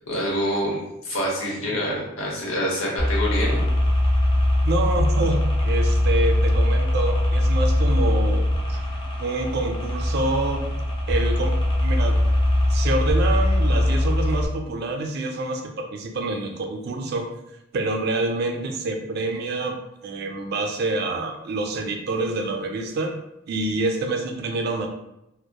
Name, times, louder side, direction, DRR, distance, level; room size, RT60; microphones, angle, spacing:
voice 1, 0.1-3.7, equal, 80° left, -4 dB, 0.8 m, -26 dB
sound 1, 3.0-14.5, left 1 dB, 25° left, 0.4 m, -21 dB
voice 2, 4.6-8.4 8.7-8.8 9.2-10.7 11.1-12.2 12.7-17.3 17.7-19.8 20.0-23.2 23.5-24.9, right 2 dB, 50° right, 3 dB, 0.3 m, -27 dB
2.7 x 2.0 x 2.2 m, 0.89 s
head